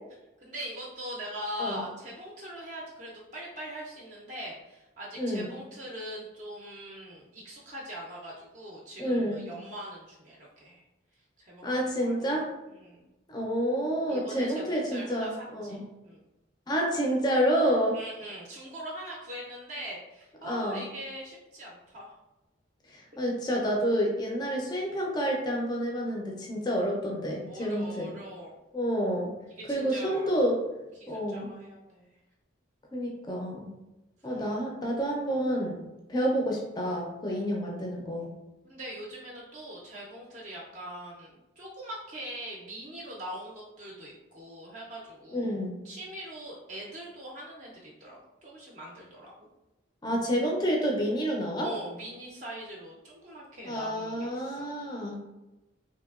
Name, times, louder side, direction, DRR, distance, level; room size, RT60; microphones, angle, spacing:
voice 1, 0.4-10.8 11.4-11.7 12.0-12.4 12.7-13.1 14.1-16.2 17.9-22.1 27.4-28.6 29.6-30.3 31.0-32.1 34.2-34.4 38.6-45.6 45.8-49.5 51.6-54.6, equal, 40° right, -4 dB, 0.5 m, -42 dB
voice 2, 5.2-5.5 9.0-9.5 11.6-12.5 13.3-15.8 16.7-18.0 20.4-20.8 22.9-28.1 28.7-29.3 29.7-30.6 31.1-31.5 32.9-33.7 34.2-35.8 36.1-38.3 45.3-45.8 50.0-51.7 53.7-55.1, equal, 20° left, -1 dB, 0.4 m, -29 dB
3.1 x 2.8 x 2.3 m, 1.0 s
head